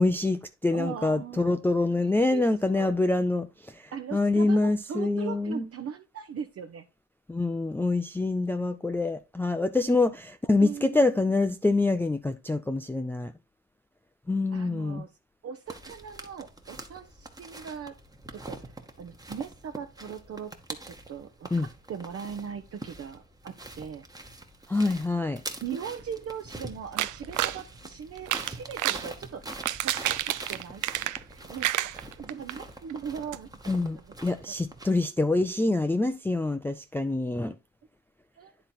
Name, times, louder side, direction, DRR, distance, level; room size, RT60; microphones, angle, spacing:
voice 1, 0.0-5.7 7.3-13.3 14.3-15.0 21.5-21.7 24.7-25.4 33.7-37.6, left 2 dB, 5° left, 0.4 m, -26 dB
voice 2, 0.7-1.6 1.9-3.2 3.9-6.9 10.6-11.0 14.5-15.1 15.4-18.0 18.3-20.5 20.8-24.0 25.6-29.4 29.8-30.8 31.3-31.7 32.2-33.5 33.8-34.1 38.4-38.5, right 7 dB, 50° right, 0.8 m, -39 dB
sound 1, 15.7-34.9, right 2 dB, 10° right, 1.1 m, -44 dB
sound 2, 27.0-27.6 28.2-29.1 29.5-31.3 31.6-32.5 32.9-33.0 33.3-33.4, right 14 dB, 80° right, 0.5 m, -29 dB
9.8 x 3.9 x 4.3 m
cardioid pair, 90°, 30 cm